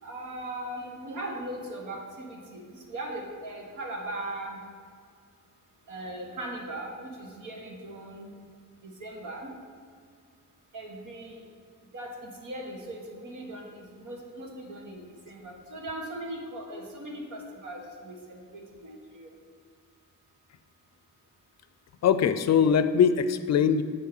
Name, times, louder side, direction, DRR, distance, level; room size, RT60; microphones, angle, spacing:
voice 1, 0.0-4.6 5.9-8.3 8.8-9.5 10.7-11.4 11.9-19.3, right 1 dB, 65° right, 1 dB, 1.7 m, -39 dB
voice 2, 22.0-23.8, left 7 dB, 55° left, 12 dB, 0.5 m, -22 dB
7.7 x 4.7 x 7.0 m, 2.1 s
cardioid pair, 90°, 32 cm